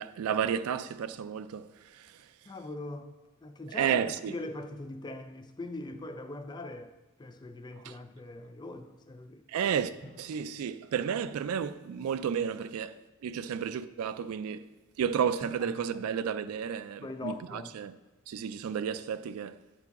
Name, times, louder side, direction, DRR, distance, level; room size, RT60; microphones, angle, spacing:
voice 1, 0.0-2.2 3.7-4.4 7.8-8.0 9.5-9.9 10.2-14.7 15.0-17.9 18.3-19.6, right 7 dB, 85° right, 0.3 m, -32 dB
voice 2, 2.5-3.1 3.4-3.9 4.3-6.9 7.2-9.4 17.0-17.7, left 2 dB, 20° left, 0.4 m, -41 dB
Drum, 5.9-7.0 10.0-11.8 15.4-17.4, equal, 80° left, 2.0 m, -55 dB
9.8 x 4.5 x 4.1 m
head